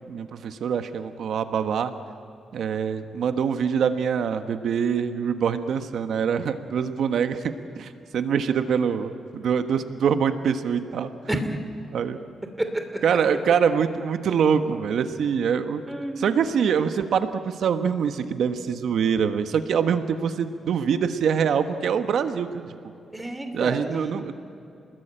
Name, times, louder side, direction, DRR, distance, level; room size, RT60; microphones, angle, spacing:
voice 1, 0.1-1.9 2.5-11.1 11.9-12.2 13.0-15.8 16.2-22.7 23.5-24.3, right 7 dB, 70° right, 9 dB, 1.3 m, -24 dB
voice 2, 12.6-13.0 15.9-16.4 23.1-24.1, right 1 dB, 10° right, 6 dB, 2.7 m, -30 dB
29.0 x 20.5 x 9.0 m, 2.7 s
cardioid pair, 130°, 0 cm